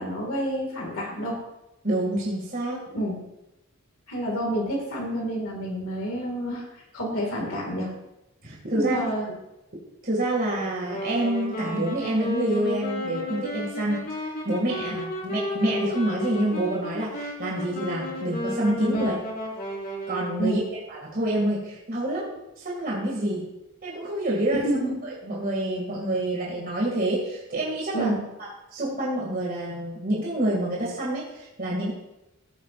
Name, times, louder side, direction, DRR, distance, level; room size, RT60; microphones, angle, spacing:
voice 1, 0.0-1.4 2.9-3.2 4.1-7.9 8.7-9.3 14.9-15.0 18.9-19.1 20.4-20.6 24.5-25.0 27.9-28.2, equal, 65° left, -1 dB, 2.1 m, -29 dB
voice 2, 1.8-2.8 8.4-9.0 10.0-19.1 20.1-20.6 20.9-22.3 22.6-23.4 23.8-24.7 25.0-28.1 28.7-31.9, right 1 dB, 40° right, -4 dB, 2.2 m, -27 dB
Wind instrument woodwind instrument, 10.8-20.5, left 1 dB, 45° left, 3.4 m, -33 dB
15.5 x 8.8 x 2.5 m, 0.92 s
head